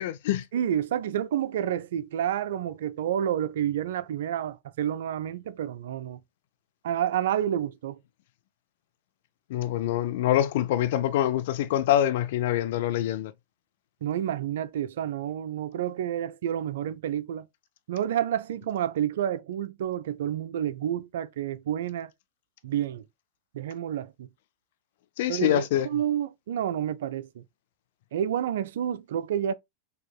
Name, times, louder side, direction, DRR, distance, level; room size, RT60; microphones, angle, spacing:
voice 1, 0.0-0.4 9.5-13.3 25.2-25.9, left 12 dB, 60° left, 0.4 m, -25 dB
voice 2, 0.5-6.2 6.8-8.0 14.0-17.5 17.9-22.1 22.6-23.0 23.5-24.3 25.3-27.4 28.1-29.5, right 10 dB, 70° right, 0.3 m, -29 dB
4.6 x 2.7 x 2.3 m
hypercardioid pair, 90°, 0 cm